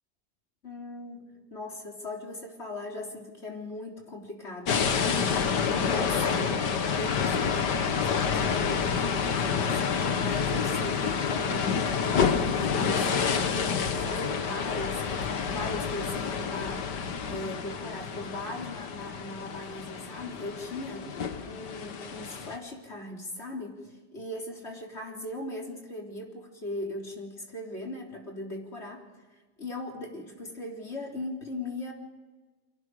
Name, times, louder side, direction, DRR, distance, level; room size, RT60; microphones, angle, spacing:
voice 1, 0.6-5.1 5.7-13.1 13.9-29.0 29.6-31.9, left 2 dB, 40° left, 0 dB, 3.9 m, -39 dB
sound 1, 4.7-22.6, left 6 dB, 90° left, 2.0 m, -28 dB
29.5 x 23.5 x 4.9 m, 1.3 s
omnidirectional pair, 1.8 m